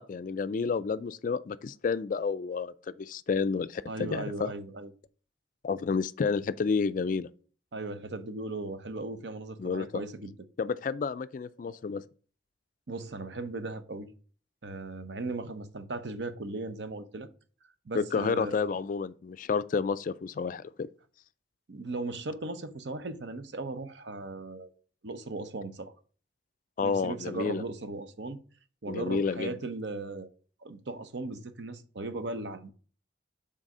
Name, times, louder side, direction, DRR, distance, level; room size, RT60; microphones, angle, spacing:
voice 1, 0.0-4.5 5.6-7.3 9.6-9.9 10.6-12.0 17.9-20.9 26.8-27.6 28.9-29.6, left 5 dB, 45° left, 0.3 m, -30 dB
voice 2, 3.9-4.9 7.7-10.3 11.6-11.8 12.9-14.1 14.6-17.3 17.9-18.6 21.7-24.7 25.0-25.9 26.8-28.4 28.8-30.3 30.6-32.7, right 2 dB, 70° right, 0.7 m, -37 dB
6.2 x 4.0 x 5.4 m
head